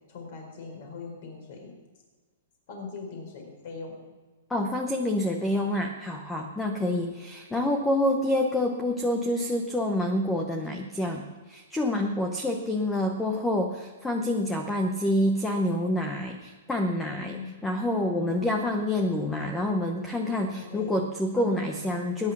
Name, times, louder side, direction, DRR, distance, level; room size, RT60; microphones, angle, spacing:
voice 1, 0.1-1.7 2.7-4.0 6.7-7.1 17.2-17.7 18.2-18.4 20.5-21.0 21.4-22.1, left 4 dB, 40° left, 2 dB, 4.4 m, -41 dB
voice 2, 4.5-22.3, left 1 dB, 5° left, 4 dB, 0.8 m, -27 dB
19.5 x 10.0 x 6.0 m, 1.4 s
hypercardioid pair, 175°, 0 cm